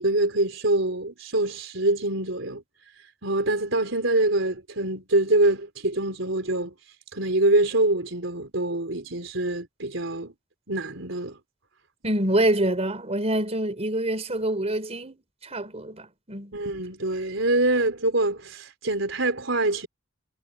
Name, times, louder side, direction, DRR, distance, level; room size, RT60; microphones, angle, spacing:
voice 1, 0.0-2.6 3.2-6.7 7.1-10.3 10.7-11.4 16.5-19.9, right 2 dB, 70° right, 4.9 m, -25 dB
voice 2, 12.0-15.2 15.4-16.5, right 1 dB, 35° right, 4.9 m, -26 dB
head